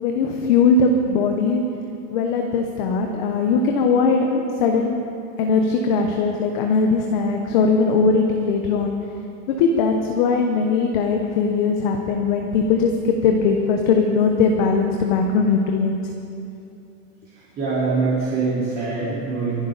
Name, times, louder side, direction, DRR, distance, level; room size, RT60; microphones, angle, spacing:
voice 1, 0.0-1.6 2.1-5.0 5.4-8.9 9.5-16.0, left 4 dB, 35° left, 3 dB, 0.9 m, -20 dB
voice 2, 17.6-19.7, right 4 dB, 20° right, -10 dB, 4.0 m, -23 dB
27.5 x 11.5 x 4.0 m, 2.7 s
supercardioid pair, 175°, 44 cm